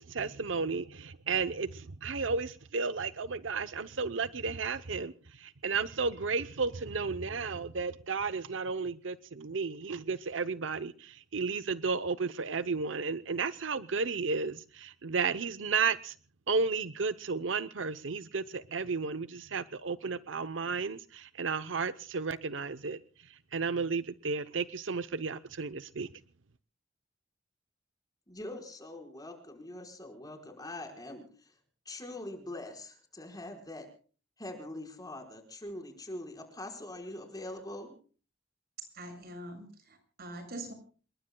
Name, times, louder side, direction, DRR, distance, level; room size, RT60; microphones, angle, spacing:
voice 1, 0.0-16.2 16.5-26.1, right 4 dB, 85° right, 0.8 m, -33 dB
voice 2, 28.3-31.5 31.8-33.9 34.4-37.9, left 1 dB, 20° left, 4.9 m, -43 dB
voice 3, 38.9-40.7, right 1 dB, 55° right, 7.3 m, -44 dB
28.0 x 22.0 x 2.3 m
head